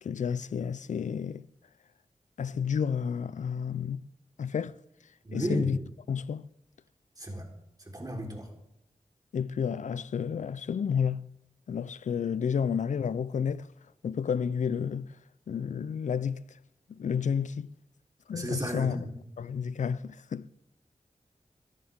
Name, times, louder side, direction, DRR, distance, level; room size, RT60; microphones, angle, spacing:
voice 1, 0.0-1.5 2.4-4.0 4.4-4.8 5.3-5.8 6.1-6.5 9.3-11.3 11.7-13.7 14.0-15.2 15.5-16.6 16.9-17.7 18.3-19.0 19.4-20.5, left 7 dB, 85° left, 0.5 m, -31 dB
voice 2, 5.2-5.7 7.2-7.5 7.9-8.5 18.3-19.2, right 1 dB, 30° right, 3.9 m, -34 dB
25.5 x 11.0 x 3.6 m
cardioid pair, 55°, 12 cm